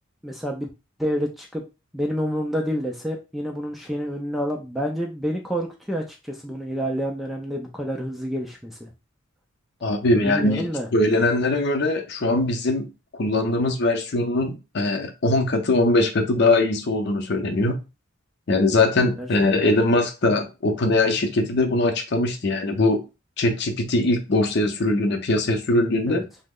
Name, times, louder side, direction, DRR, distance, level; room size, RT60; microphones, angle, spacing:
voice 1, 0.2-0.7 1.0-1.6 1.9-8.9 10.2-10.9 19.2-19.3 26.1-26.2, equal, ahead, 1 dB, 0.3 m, -28 dB
voice 2, 9.8-12.9 13.1-17.7 18.5-23.0 23.4-26.2, left 2 dB, 50° left, 4 dB, 0.6 m, -21 dB
3.0 x 2.0 x 3.6 m, 0.28 s
head